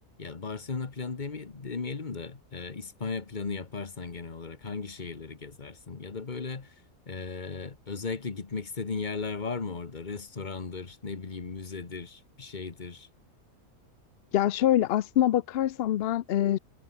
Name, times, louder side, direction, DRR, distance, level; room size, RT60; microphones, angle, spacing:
voice 1, 0.2-6.7 7.1-13.1, left 4 dB, 30° left, 1.5 m, -36 dB
voice 2, 14.3-16.6, left 12 dB, 70° left, 0.5 m, -24 dB
omnidirectional pair, 1.5 m